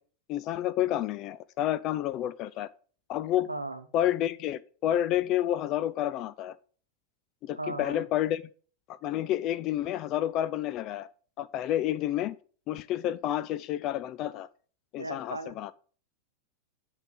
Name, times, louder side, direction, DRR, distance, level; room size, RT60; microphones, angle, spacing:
voice 1, 0.3-2.7 3.1-3.5 3.9-6.6 7.4-8.4 8.9-11.1 11.4-12.4 12.7-14.5 14.9-15.7, left 12 dB, 35° left, 0.4 m, -29 dB
voice 2, 3.5-3.8 7.5-8.1 15.0-15.6, right 2 dB, 85° right, 1.0 m, -36 dB
8.9 x 4.0 x 7.0 m
figure-of-eight pair, 90°, 0 cm